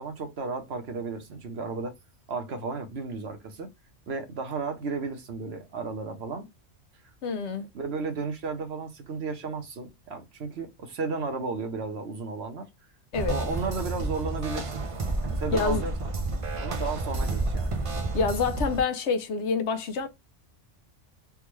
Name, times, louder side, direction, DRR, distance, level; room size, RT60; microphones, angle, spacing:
voice 1, 0.0-2.0 2.3-3.7 4.1-6.5 7.7-12.7 13.3-14.8 15.2-16.1 16.6-17.8, right 4 dB, 60° right, 1.1 m, -34 dB
voice 2, 7.2-7.7 13.1-13.4 15.5-15.8 18.1-20.1, left 5 dB, 70° left, 0.9 m, -27 dB
sound 1, 13.1-18.8, right 2 dB, 40° right, 0.5 m, -30 dB
3.5 x 2.3 x 3.0 m
omnidirectional pair, 1.2 m